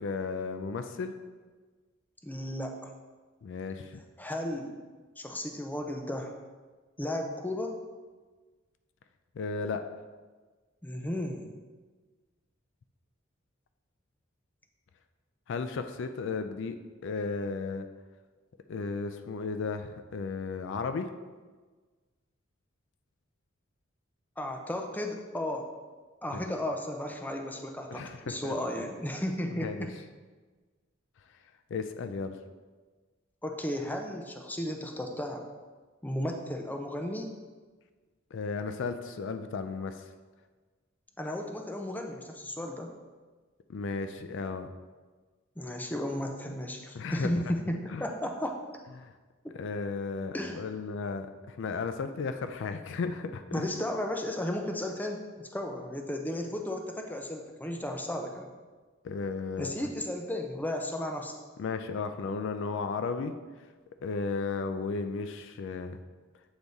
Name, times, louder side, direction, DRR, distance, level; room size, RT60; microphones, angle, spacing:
voice 1, 0.0-1.1 3.4-4.0 9.4-9.8 15.5-16.8 17.0-17.9 18.7-21.1 26.4-26.5 27.9-28.9 29.6-29.9 31.7-32.4 38.3-40.0 43.7-44.7 46.9-47.3 47.9-48.0 49.0-49.1 49.5-53.7 59.0-59.9 61.6-63.3 64.0-66.0, left 4 dB, 65° left, 9 dB, 0.4 m, -34 dB
voice 2, 2.2-2.9 4.2-4.8 5.2-6.3 7.0-7.7 10.8-11.5 24.4-25.7 26.2-29.9 33.4-35.5 36.0-37.3 41.2-42.9 45.6-48.6 49.4-49.6 50.3-50.6 53.5-58.5 59.6-61.3, left 1 dB, 10° left, 2 dB, 0.5 m, -34 dB
7.9 x 3.5 x 4.0 m, 1.4 s
head